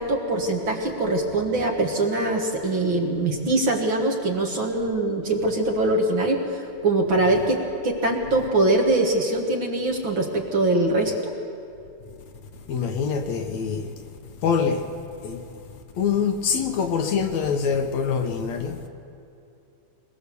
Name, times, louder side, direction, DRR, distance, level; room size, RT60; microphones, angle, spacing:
voice 1, 0.0-7.6 7.8-11.3, right 2 dB, 45° right, 2.0 m, -23 dB
voice 2, 12.7-13.9 14.4-14.9 15.2-15.4 16.0-18.8, left 6 dB, 65° left, 2.2 m, -24 dB
22.5 x 22.0 x 7.0 m
omnidirectional pair, 3.6 m